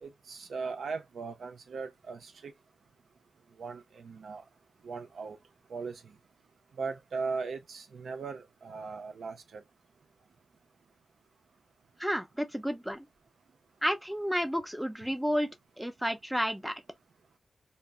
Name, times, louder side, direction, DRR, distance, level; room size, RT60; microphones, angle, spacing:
voice 1, 0.0-2.5 3.6-4.4 4.8-5.4 5.7-6.0 6.8-9.6, right 4 dB, 75° right, 0.5 m, -38 dB
voice 2, 12.0-13.1 13.8-16.8, equal, 5° right, 0.7 m, -31 dB
2.1 x 2.0 x 3.4 m
cardioid pair, 50°, 0 cm